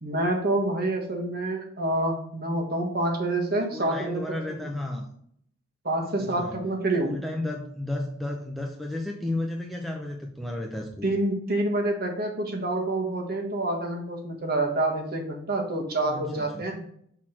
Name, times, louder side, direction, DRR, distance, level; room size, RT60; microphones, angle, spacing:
voice 1, 0.0-4.7 5.8-7.2 11.0-16.8, right 2 dB, 45° right, 1 dB, 1.4 m, -27 dB
voice 2, 3.7-5.1 6.2-6.6 7.0-11.1 16.1-16.7, left 1 dB, ahead, 0 dB, 0.6 m, -33 dB
6.0 x 4.1 x 4.3 m, 0.66 s
head